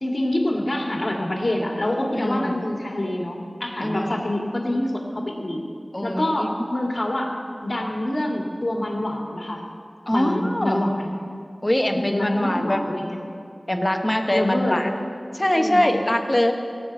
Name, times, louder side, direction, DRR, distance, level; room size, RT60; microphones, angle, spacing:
voice 1, 0.0-5.6 6.0-7.4 7.6-9.6 10.1-11.2 11.8-13.2 14.3-14.8 15.5-15.9, left 1 dB, 55° left, 0 dB, 2.1 m, -26 dB
voice 2, 2.1-2.6 3.8-4.3 5.9-6.5 10.1-10.8 11.6-12.8 13.7-14.9 15.3-16.5, left 1 dB, 25° left, 4 dB, 1.2 m, -23 dB
17.5 x 5.9 x 8.0 m, 2.4 s
wide cardioid pair, 40°, 0 cm